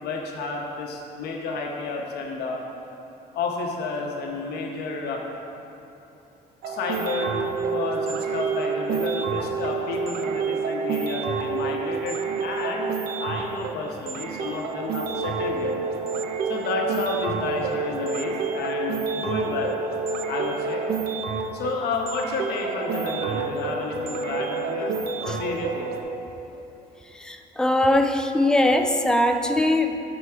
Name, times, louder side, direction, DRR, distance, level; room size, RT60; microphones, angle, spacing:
voice 1, 0.0-2.6 3.3-5.2 6.7-12.9 13.2-15.7 16.5-19.8 20.3-20.9 21.5-25.0 25.2-25.9, left 3 dB, 70° left, 0 dB, 0.8 m, -31 dB
sound 1, 6.6-26.0, right 5 dB, 70° right, 0.5 m, -29 dB
voice 2, 27.1-30.0, left 1 dB, 5° left, 5 dB, 0.4 m, -21 dB
6.1 x 4.8 x 4.4 m, 2.9 s
cardioid pair, 110°, 17 cm